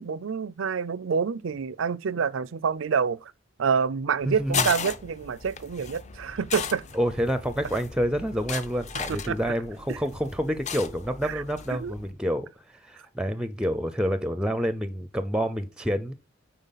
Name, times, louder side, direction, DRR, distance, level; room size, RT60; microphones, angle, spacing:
voice 1, 0.0-3.3 3.6-6.8 9.1-9.4 9.9-10.0 11.2-11.4 11.7-11.9, right 6 dB, 80° right, 0.5 m, -27 dB
sound 1, 4.2-12.1, left 6 dB, 35° left, 0.8 m, -36 dB
voice 2, 4.3-4.7 6.9-16.1, equal, 5° right, 0.6 m, -28 dB
9.1 x 4.4 x 4.0 m
head